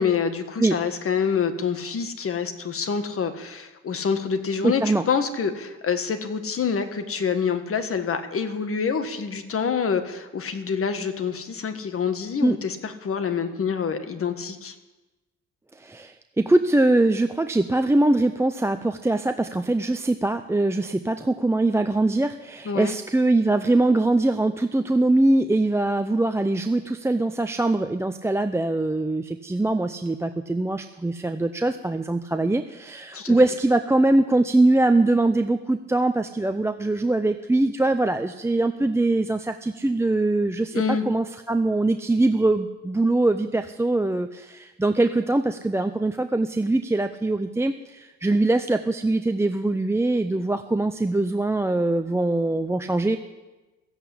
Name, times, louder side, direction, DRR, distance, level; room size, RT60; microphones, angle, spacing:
voice 1, 0.0-14.7 22.6-22.9 33.1-33.4 40.7-41.0, left 6 dB, 45° left, 8 dB, 1.5 m, -26 dB
voice 2, 4.6-5.0 12.4-12.6 15.7-53.2, right 2 dB, 10° right, 7 dB, 0.5 m, -22 dB
15.5 x 8.1 x 8.6 m, 1.1 s
cardioid pair, 90°, 30 cm